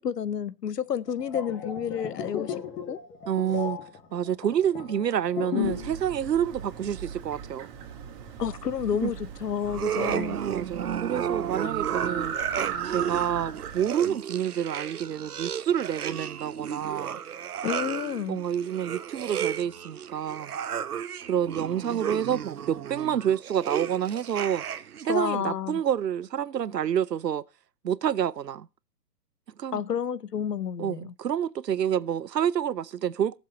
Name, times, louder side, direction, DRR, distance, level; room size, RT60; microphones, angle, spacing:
voice 1, 0.0-2.6 2.9-3.0 8.4-10.4 17.6-18.4 25.1-25.8 29.7-31.1, left 8 dB, 75° left, 0.9 m, -30 dB
sound 1, 1.1-6.0 6.2-6.5, left 9 dB, 25° left, 2.3 m, -34 dB
voice 2, 3.3-3.8 4.1-7.7 9.0-9.1 10.5-12.3 12.8-17.2 18.3-20.6 21.2-24.6 25.0-27.4 27.8-28.7 29.6-29.8 30.8-33.4, right 9 dB, 80° right, 0.7 m, -28 dB
sound 2, 5.6-13.9, right 8 dB, 30° right, 2.5 m, -37 dB
sound 3, 9.7-25.1, right 8 dB, 65° right, 1.1 m, -33 dB
16.0 x 7.4 x 3.9 m
figure-of-eight pair, 125°, 48 cm